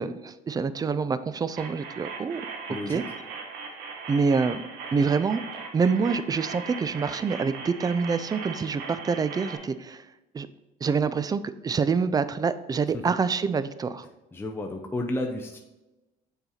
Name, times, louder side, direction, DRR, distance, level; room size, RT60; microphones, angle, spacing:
voice 1, 0.0-2.4 2.9-3.0 4.1-4.6 4.9-5.4 5.7-10.0 10.3-10.5 10.8-14.1, right 5 dB, 25° right, 14 dB, 0.4 m, -26 dB
sound 1, 1.6-9.6, right 5 dB, 90° right, 1.1 m, -39 dB
voice 2, 2.7-3.0 12.9-13.0 14.3-15.6, left 1 dB, 15° left, 2 dB, 0.6 m, -31 dB
6.9 x 4.0 x 4.2 m, 1.0 s
cardioid pair, 95°, 17 cm